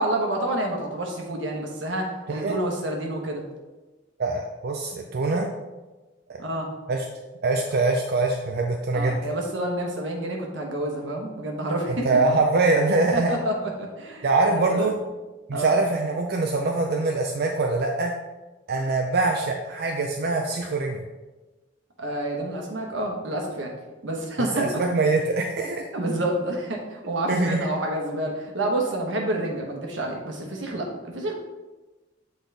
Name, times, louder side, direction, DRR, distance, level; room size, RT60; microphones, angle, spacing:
voice 1, 0.0-3.4 6.4-6.7 8.9-12.1 13.1-14.9 15.5-15.7 22.0-23.7 24.0-24.7 25.9-31.4, right 1 dB, 85° right, 1 dB, 1.2 m, -28 dB
voice 2, 4.2-5.5 6.3-6.4 6.9-7.1 7.4-9.2 11.9-13.3 14.2-15.0 15.5-18.1 18.7-21.0 24.4-25.9 27.3-27.7, right 3 dB, 60° right, 1 dB, 0.5 m, -23 dB
8.0 x 4.0 x 3.4 m, 1.2 s
head